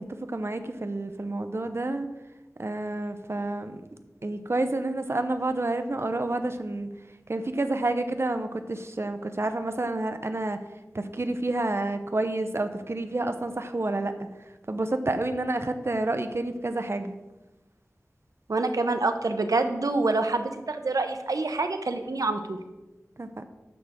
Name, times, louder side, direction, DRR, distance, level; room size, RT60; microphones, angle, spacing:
voice 1, 0.0-2.1 2.6-6.9 7.3-10.6 10.9-14.1 14.7-17.2 23.2-23.4, right 2 dB, 50° right, 8 dB, 0.7 m, -29 dB
voice 2, 18.5-22.6, right 3 dB, 90° right, 7 dB, 0.7 m, -26 dB
9.9 x 6.5 x 3.6 m, 1.1 s
wide cardioid pair, 55°, 6 cm